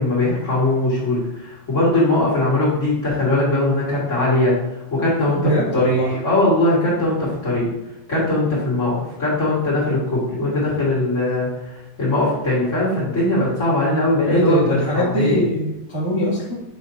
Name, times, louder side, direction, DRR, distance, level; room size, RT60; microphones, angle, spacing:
voice 1, 0.0-4.5 4.9-5.4 5.7-7.7 8.1-15.4, left 2 dB, 25° left, -8 dB, 2.0 m, -20 dB
voice 2, 5.4-6.2 14.1-16.5, equal, 35° right, -9 dB, 0.4 m, -22 dB
7.7 x 5.1 x 2.9 m, 0.91 s
omnidirectional pair, 3.9 m